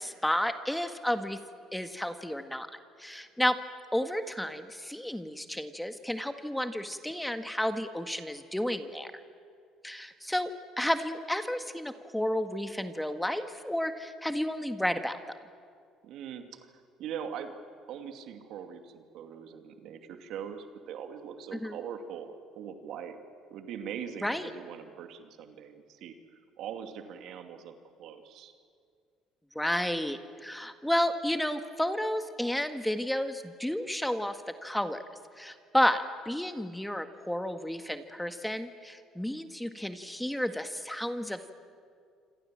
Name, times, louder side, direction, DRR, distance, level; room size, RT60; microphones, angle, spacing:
voice 1, 0.0-1.4 1.7-2.7 3.0-3.6 3.9-9.1 9.8-15.2 21.5-21.8 24.2-24.5 29.6-35.0 35.4-41.5, left 1 dB, 5° left, 8 dB, 1.8 m, -31 dB
voice 2, 16.0-16.7 17.0-17.6 17.9-23.2 23.5-28.5, right 8 dB, 65° right, 6 dB, 2.5 m, -42 dB
27.0 x 26.5 x 7.6 m, 2.2 s
hypercardioid pair, 65°, 0 cm